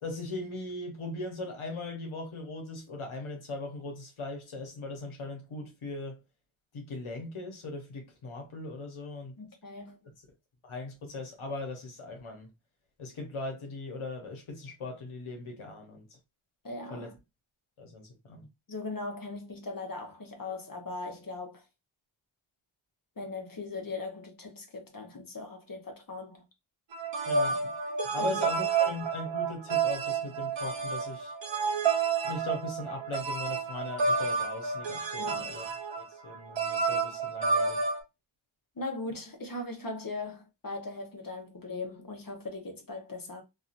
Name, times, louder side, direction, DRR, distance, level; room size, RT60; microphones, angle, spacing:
voice 1, 0.0-6.2 6.7-9.4 10.6-12.5 13.0-16.1 16.9-17.1 17.8-18.4 27.3-27.7 28.1-31.3 32.2-35.6 35.9-37.8, left 2 dB, 75° left, 1.0 m, -39 dB
voice 2, 9.4-10.1 16.6-17.1 18.4-21.6 23.2-26.4 28.2-28.4 35.2-35.5 38.8-43.4, left 3 dB, 40° left, 1.0 m, -39 dB
sound 1, 26.9-38.0, right 5 dB, 60° right, 0.8 m, -30 dB
2.7 x 2.5 x 2.5 m
cardioid pair, 55°, 49 cm